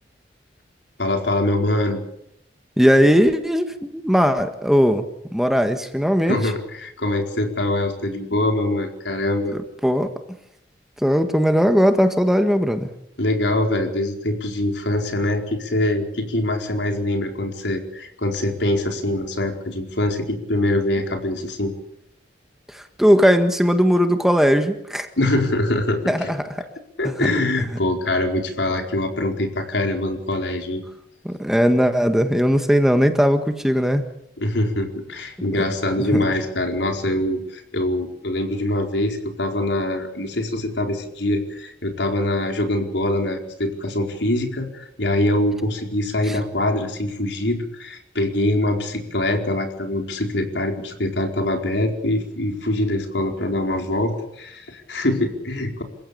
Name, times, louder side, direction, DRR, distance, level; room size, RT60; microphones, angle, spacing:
voice 1, 1.0-2.0 6.3-9.6 13.2-21.7 25.2-26.3 27.0-30.8 34.4-55.8, left 1 dB, 80° left, 4 dB, 4.6 m, -23 dB
voice 2, 2.8-5.0 5.3-6.4 9.5-10.1 11.0-12.9 22.7-25.1 26.1-26.6 27.0-27.3 31.2-34.0 35.4-35.5 36.1-36.3 46.3-46.4, equal, ahead, 7 dB, 1.6 m, -18 dB
28.0 x 16.0 x 8.7 m, 0.76 s
head